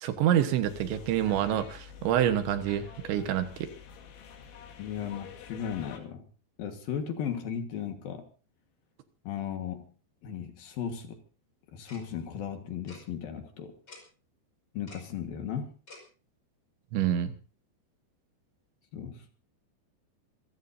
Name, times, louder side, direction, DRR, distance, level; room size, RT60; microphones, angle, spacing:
voice 1, 0.0-3.7 16.9-17.4, right 10 dB, 80° right, 9 dB, 3.6 m, -27 dB
sound 1, 0.6-6.0, left 7 dB, 80° left, 4.4 m, -48 dB
voice 2, 4.8-6.2 6.6-8.3 9.2-9.8 10.2-11.2 11.7-13.7 14.7-15.7 18.9-19.3, left 8 dB, 60° left, 6 dB, 3.1 m, -36 dB
Tick-tock, 11.9-12.0 12.9-13.0 13.9-14.0 14.9-15.0 15.9-16.0, left 2 dB, 25° left, 5.8 m, -47 dB
27.0 x 15.5 x 2.7 m, 0.36 s
omnidirectional pair, 5.2 m